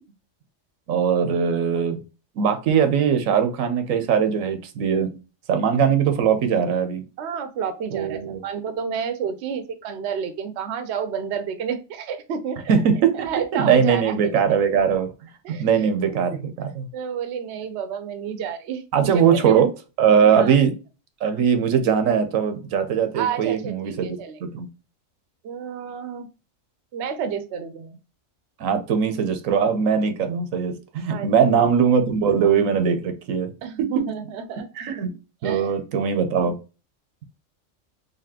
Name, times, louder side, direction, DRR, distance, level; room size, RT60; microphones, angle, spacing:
voice 1, 0.9-2.0 2.4-5.1 5.5-7.0 7.9-8.4 12.7-15.1 15.6-16.9 18.9-19.7 20.0-20.8 21.2-24.7 28.6-33.5 34.8-35.1 35.4-36.6, right 7 dB, 85° right, 8 dB, 1.1 m, -20 dB
voice 2, 7.2-12.6 13.1-14.1 15.4-16.4 16.9-19.5 20.2-20.6 23.1-24.4 25.4-26.3 26.9-28.0 31.1-31.6 33.6-34.7 35.4-35.7, right 7 dB, 65° right, 9 dB, 0.8 m, -30 dB
4.1 x 2.9 x 2.7 m, 0.31 s
omnidirectional pair, 1.3 m